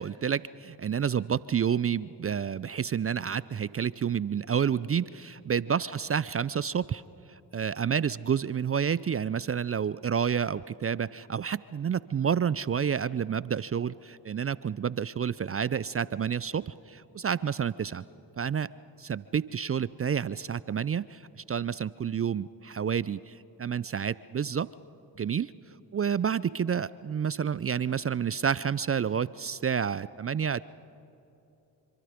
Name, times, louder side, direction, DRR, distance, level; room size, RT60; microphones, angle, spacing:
voice 1, 0.0-7.0 7.3-18.0 18.4-18.7 19.0-21.2 21.5-24.7 25.2-25.5 25.9-30.6, right 7 dB, 30° right, 19 dB, 0.5 m, -29 dB
27.5 x 24.5 x 5.1 m, 2.8 s
hypercardioid pair, 50°, 49 cm